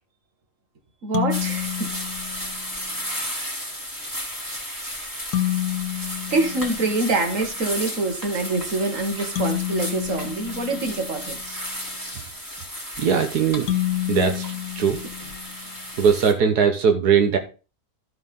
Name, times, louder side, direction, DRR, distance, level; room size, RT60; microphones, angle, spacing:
voice 1, 1.0-1.9 5.9-11.6, right 3 dB, 55° right, 4 dB, 2.2 m, -25 dB
sound 1, 1.1-2.8 5.3-7.3 9.4-11.5 13.7-15.7, left 13 dB, 80° left, 1.3 m, -29 dB
sound 2, 1.3-16.3, equal, 10° right, 2.4 m, -34 dB
voice 2, 13.0-13.7 14.1-15.0 16.0-17.4, right 6 dB, 85° right, 6 dB, 1.7 m, -20 dB
13.0 x 4.6 x 5.5 m, 0.34 s
omnidirectional pair, 1.6 m